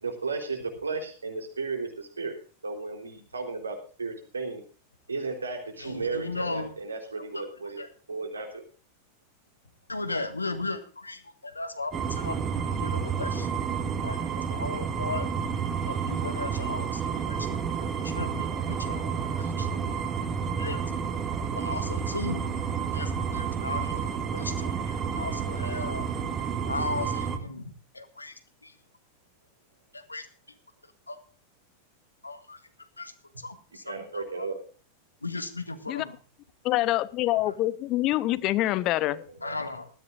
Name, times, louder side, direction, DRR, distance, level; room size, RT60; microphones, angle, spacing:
voice 1, 0.0-4.6 5.1-7.8 8.1-8.6 33.9-34.6 38.7-39.6, right 4 dB, 75° right, 3.7 m, -35 dB
voice 2, 5.8-6.7 7.3-7.4 7.8-7.9 9.9-13.5 14.0-15.3 15.9-17.4 17.8-19.7 20.4-20.8 21.5-22.5 22.9-26.1 26.7-28.3 28.6-28.7 29.9-30.3 31.1-31.2 32.2-32.6 33.0-34.5 35.2-36.1 37.5-37.6 39.4-39.9, left 3 dB, 80° left, 1.9 m, -36 dB
sound 1, 11.9-27.4, right 6 dB, 25° right, 2.1 m, -30 dB
voice 3, 36.6-39.2, left 16 dB, 40° left, 0.8 m, -25 dB
19.5 x 14.0 x 2.6 m
figure-of-eight pair, 90°, 0 cm